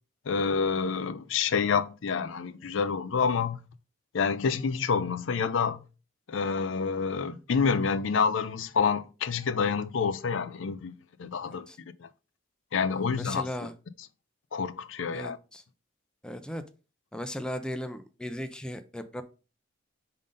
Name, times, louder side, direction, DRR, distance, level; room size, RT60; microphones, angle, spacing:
voice 1, 0.3-3.6 4.1-5.8 6.3-11.7 12.0-12.1 12.7-13.5 14.5-15.4, left 5 dB, 70° left, 0.5 m, -28 dB
voice 2, 12.9-13.7 15.1-15.6 16.2-16.6 17.1-19.2, left 1 dB, 5° left, 0.4 m, -37 dB
5.4 x 3.7 x 5.1 m
head